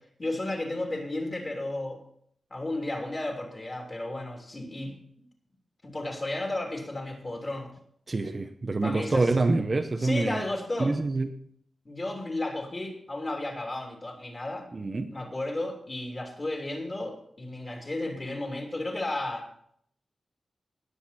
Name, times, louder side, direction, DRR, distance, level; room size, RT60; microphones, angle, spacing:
voice 1, 0.2-2.0 2.5-4.9 5.8-7.7 8.8-9.3 10.0-10.9 11.8-14.7 15.1-19.5, left 2 dB, 25° left, 1 dB, 3.1 m, -33 dB
voice 2, 8.1-10.4 10.8-11.5 14.7-15.1, right 3 dB, 30° right, 6 dB, 0.8 m, -26 dB
19.5 x 8.1 x 4.3 m, 0.66 s
wide cardioid pair, 180°, 0 cm